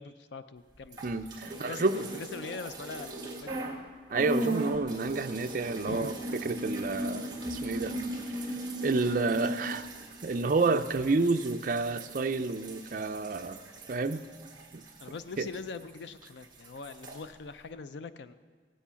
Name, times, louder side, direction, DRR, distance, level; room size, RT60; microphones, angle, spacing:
voice 1, 0.0-1.1 1.5-3.9 5.9-6.2 15.0-18.3, left 4 dB, 70° left, 12 dB, 0.5 m, -42 dB
sound 1, 0.9-3.8 4.1-16.0 16.3-17.2, right 1 dB, 25° right, 1.8 m, -38 dB
voice 2, 1.0-2.1 4.1-6.1 6.4-7.9 8.8-9.8 10.2-13.6 13.9-14.2 14.7-14.8 15.4-15.5, right 3 dB, 45° right, 8 dB, 0.5 m, -29 dB
16.5 x 8.4 x 5.7 m, 1.5 s
head